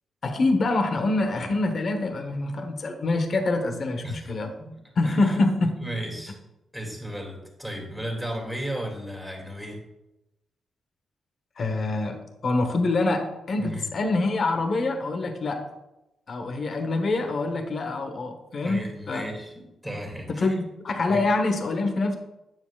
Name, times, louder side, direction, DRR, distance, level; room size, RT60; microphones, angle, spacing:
voice 1, 0.2-4.5 5.0-5.7 11.6-15.6 16.3-19.3 20.3-22.2, left 2 dB, 50° left, 6 dB, 1.0 m, -25 dB
voice 2, 5.0-5.4 5.8-6.4 6.7-9.8 13.6-13.9 18.6-20.5 21.1-21.2, right 1 dB, 5° right, 0 dB, 2.3 m, -34 dB
9.3 x 7.3 x 2.4 m, 0.92 s
cardioid pair, 95°, 0 cm